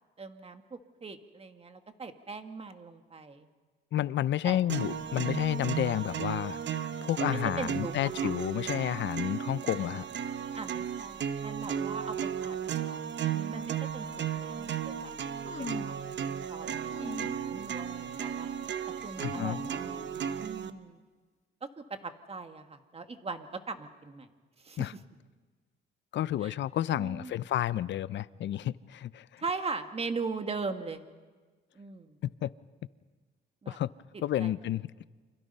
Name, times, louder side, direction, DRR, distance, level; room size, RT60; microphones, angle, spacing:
voice 1, 0.2-3.5 4.4-4.6 7.6-7.9 8.2-8.3 10.6-13.0 13.3-15.9 16.2-18.5 19.0-20.1 20.4-21.0 21.6-24.3 24.6-24.9 26.4-26.5 26.9-27.3 29.4-31.0 31.8-32.2 33.6-33.8 34.4-34.8, right 4 dB, 30° right, 7 dB, 1.9 m, -40 dB
voice 2, 3.9-10.1 19.2-19.6 24.8-24.9 26.1-29.4 32.2-32.5 33.7-33.9 34.2-34.9, left 12 dB, 65° left, 18 dB, 0.7 m, -31 dB
sound 1, 4.7-20.7, right 8 dB, 65° right, 1.2 m, -35 dB
sound 2, 15.4-16.1 16.9-17.5 17.9-18.3 19.2-20.4, left 5 dB, 35° left, 1.1 m, -43 dB
29.5 x 25.0 x 5.6 m, 1.4 s
cardioid pair, 90°, 20 cm